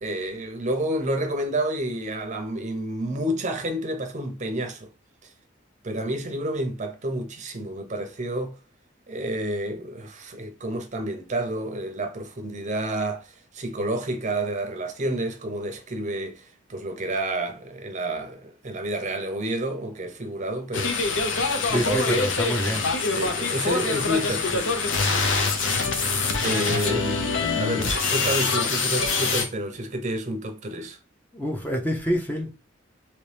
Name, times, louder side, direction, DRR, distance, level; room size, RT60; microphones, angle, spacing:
voice 1, 0.0-4.9 5.2-5.3 5.8-8.6 9.1-22.3 23.2-24.8 26.4-31.0, right 1 dB, 40° right, 0.6 m, -30 dB
sound 1, 20.7-29.5, left 4 dB, 70° left, 0.7 m, -24 dB
voice 2, 21.7-22.9 26.9-27.0 31.3-32.5, equal, 10° left, 0.6 m, -27 dB
3.0 x 2.9 x 3.3 m
head